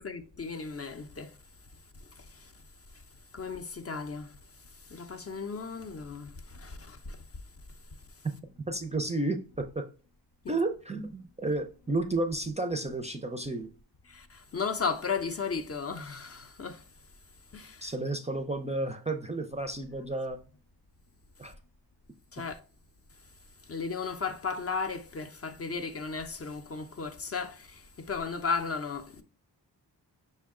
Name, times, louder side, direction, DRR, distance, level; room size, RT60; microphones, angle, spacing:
voice 1, 0.0-1.3 2.1-2.5 3.3-4.3 4.8-7.2 10.4-10.5 14.1-16.8 17.5-17.9 22.3-22.6 23.7-29.2, left 5 dB, 35° left, 0.6 m, -35 dB
voice 2, 8.7-9.9 10.5-13.7 17.8-20.4 21.4-21.5, right 2 dB, 15° right, 0.4 m, -32 dB
5.3 x 2.2 x 3.6 m
cardioid pair, 55°, 41 cm